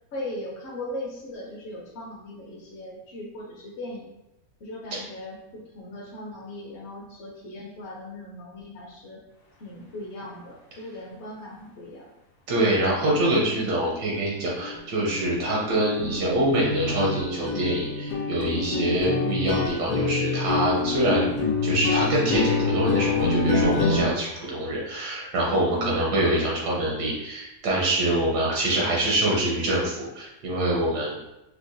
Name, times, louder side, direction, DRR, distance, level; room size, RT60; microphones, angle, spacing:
voice 1, 0.1-4.1 4.6-9.2 9.6-12.1 25.6-25.9, left 1 dB, 55° left, -4 dB, 0.8 m, -38 dB
voice 2, 12.5-21.3 21.6-31.2, right 1 dB, 80° right, -4 dB, 1.4 m, -25 dB
sound 1, 14.1-14.3 14.6-14.8 15.0-24.1, left 4 dB, 80° left, 1.2 m, -26 dB
4.5 x 2.1 x 2.6 m, 0.92 s
omnidirectional pair, 1.7 m